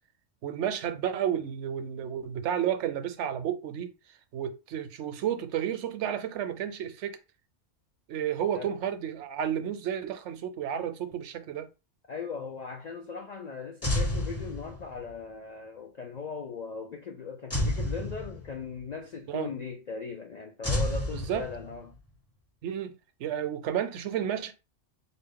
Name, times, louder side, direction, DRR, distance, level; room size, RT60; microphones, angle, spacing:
voice 1, 0.4-3.9 4.3-7.2 8.1-11.7 19.3-19.5 21.1-21.5 22.6-22.9 23.2-24.5, right 9 dB, 75° right, 0.8 m, -31 dB
voice 2, 12.1-21.9, left 5 dB, 65° left, 0.4 m, -39 dB
sound 1, 13.8-15.1 17.5-18.8 20.6-21.9, left 1 dB, 15° left, 0.5 m, -30 dB
4.1 x 2.0 x 3.6 m
omnidirectional pair, 1.2 m